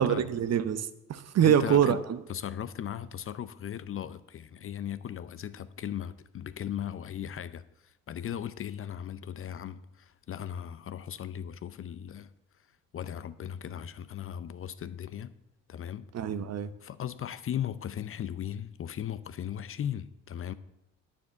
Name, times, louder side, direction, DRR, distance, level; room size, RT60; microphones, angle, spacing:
voice 1, 0.0-2.2 16.1-16.7, right 9 dB, 45° right, 0.9 m, -25 dB
voice 2, 1.4-2.0 2.3-12.3 12.9-15.3 15.7-16.1 16.8-20.5, left 9 dB, 35° left, 0.6 m, -37 dB
9.6 x 7.3 x 6.7 m
hypercardioid pair, 50°, 36 cm